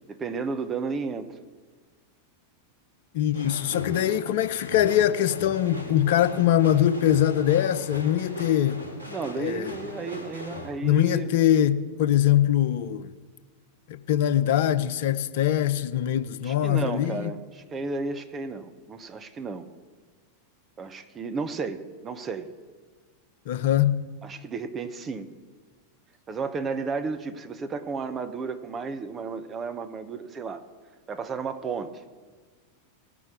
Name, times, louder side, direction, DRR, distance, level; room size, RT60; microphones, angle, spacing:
voice 1, 0.1-1.3 9.1-11.3 16.4-19.7 20.8-22.5 24.2-25.3 26.3-30.6 31.1-32.0, right 4 dB, 20° right, 1.1 m, -33 dB
voice 2, 3.1-8.8 9.4-9.7 10.8-13.1 13.9-17.3 23.5-24.0, left 11 dB, 50° left, 0.7 m, -23 dB
sound 1, 3.3-10.7, left 1 dB, 85° right, 2.3 m, -39 dB
17.5 x 6.1 x 8.5 m
figure-of-eight pair, 90°, 0 cm